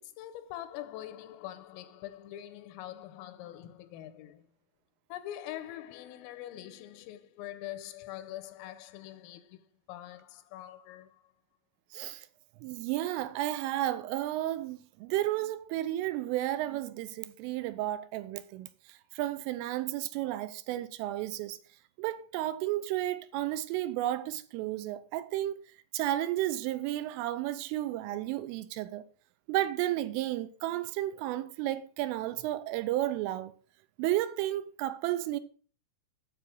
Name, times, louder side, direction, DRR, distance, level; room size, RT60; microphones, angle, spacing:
voice 1, 0.0-4.5 5.1-11.2, left 13 dB, 85° left, 3.5 m, -44 dB
voice 2, 11.9-12.3 12.6-21.6 22.0-25.6 25.9-29.0 29.5-33.5 34.0-35.4, right 14 dB, 80° right, 3.3 m, -32 dB
8.6 x 7.6 x 6.1 m
omnidirectional pair, 5.8 m